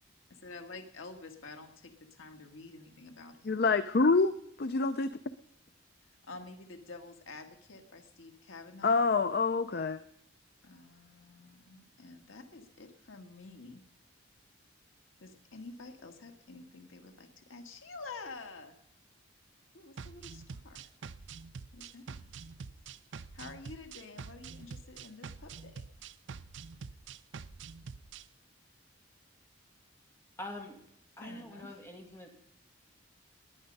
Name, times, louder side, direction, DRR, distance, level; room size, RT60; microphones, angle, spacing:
voice 1, 0.3-3.6 6.2-9.1 10.6-13.8 15.2-18.8 19.7-20.9 21.7-22.2 23.3-25.9 31.2-31.7, left 3 dB, 85° left, 5 dB, 1.7 m, -49 dB
voice 2, 3.5-4.3 4.6-5.1 8.8-10.0, left 4 dB, 50° left, 12 dB, 0.5 m, -26 dB
sound 1, 20.0-28.3, right 5 dB, 65° right, 0.5 m, -46 dB
voice 3, 30.4-30.8 31.2-32.3, left 1 dB, 15° left, 1 dB, 2.4 m, -44 dB
19.0 x 9.8 x 5.4 m, 0.76 s
head